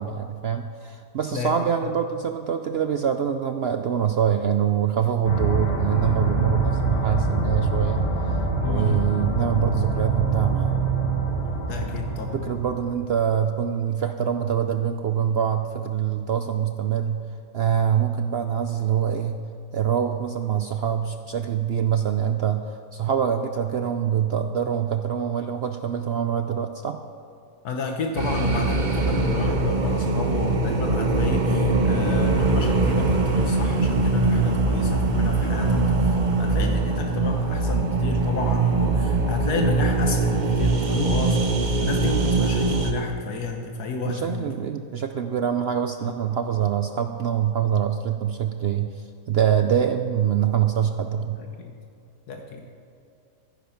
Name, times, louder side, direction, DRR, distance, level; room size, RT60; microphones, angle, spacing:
voice 1, 0.0-10.8 12.3-17.2 17.5-19.4 19.7-27.0 44.0-51.4, right 9 dB, 65° right, 7 dB, 0.6 m, -25 dB
voice 2, 1.3-1.9 8.6-9.1 11.7-12.4 27.6-44.5 46.0-46.2 51.2-51.7 52.3-52.6, left 4 dB, 80° left, 3 dB, 1.6 m, -31 dB
sound 1, 5.2-13.1, right 3 dB, 40° left, 2.3 m, -25 dB
sound 2, 28.2-42.9, right 3 dB, 35° right, 0.9 m, -22 dB
14.5 x 10.5 x 5.9 m, 2.6 s
omnidirectional pair, 1.6 m